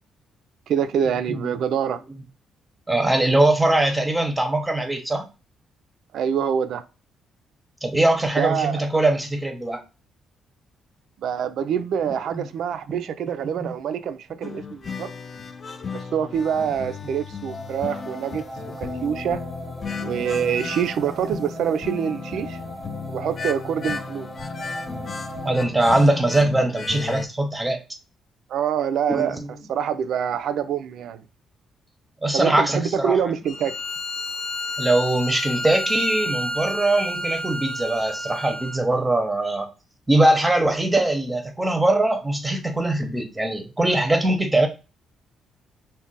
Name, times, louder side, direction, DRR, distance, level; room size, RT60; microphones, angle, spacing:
voice 1, 0.7-2.0 6.1-6.8 8.4-8.9 11.2-15.1 15.9-18.4 18.8-19.4 20.0-22.6 23.1-24.3 28.5-29.4 29.7-31.2 32.3-33.7, right 8 dB, 70° right, 0.3 m, -25 dB
voice 2, 2.9-5.3 7.8-9.8 12.3-12.5 12.9-13.0 13.6-13.7 25.4-27.8 29.1-29.5 32.2-33.2 34.8-39.7 40.1-44.7, right 1 dB, 15° right, 0.6 m, -21 dB
sound 1, 14.4-27.3, left 5 dB, 40° left, 0.4 m, -35 dB
sound 2, 17.5-25.5, right 2 dB, 5° left, 0.9 m, -38 dB
Bowed string instrument, 33.5-38.8, left 1 dB, 65° left, 0.8 m, -30 dB
2.4 x 2.1 x 3.8 m
cardioid pair, 90°, 0 cm